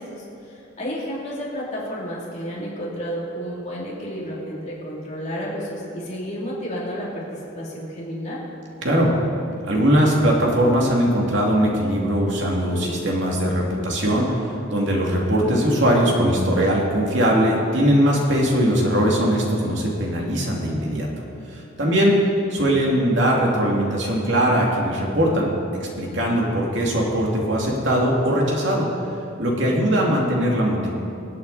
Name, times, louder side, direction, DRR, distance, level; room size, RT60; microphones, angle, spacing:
voice 1, 0.0-8.4 21.8-22.2 29.5-29.9, equal, 35° left, -5 dB, 3.1 m, -31 dB
voice 2, 9.6-14.4 14.7-21.1 21.5-22.2 22.5-28.9 29.4-30.9, equal, 65° right, -2 dB, 2.7 m, -20 dB
25.0 x 8.7 x 4.2 m, 2.7 s
head